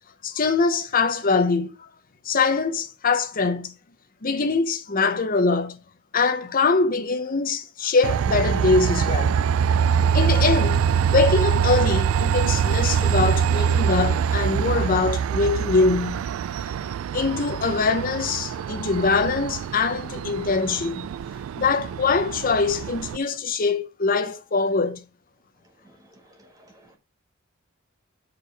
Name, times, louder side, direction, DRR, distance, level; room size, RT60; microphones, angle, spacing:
voice 1, 0.2-1.9 2.3-3.7 4.2-5.8 6.1-9.4 10.1-10.8 11.1-16.2 17.1-21.1 21.6-25.0, left 4 dB, 45° left, 0.8 m, -23 dB
Train, 8.0-23.2, right 7 dB, 90° right, 0.3 m, -24 dB
voice 2, 25.6-27.0, right 1 dB, 15° right, 1.7 m, -56 dB
6.7 x 4.7 x 4.7 m
head